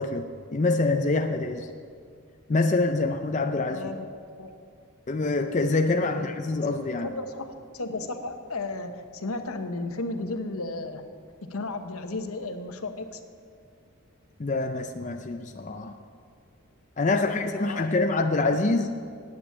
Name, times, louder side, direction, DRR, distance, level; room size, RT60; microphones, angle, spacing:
voice 1, 0.0-1.7 2.5-3.9 5.1-7.1 14.4-15.9 17.0-18.9, left 3 dB, 35° left, 5 dB, 0.5 m, -25 dB
voice 2, 3.7-4.1 4.4-4.5 6.0-6.3 6.7-11.0 11.4-13.2 17.1-18.1, left 2 dB, 80° left, 7 dB, 1.0 m, -34 dB
9.7 x 8.7 x 8.5 m, 2.2 s
head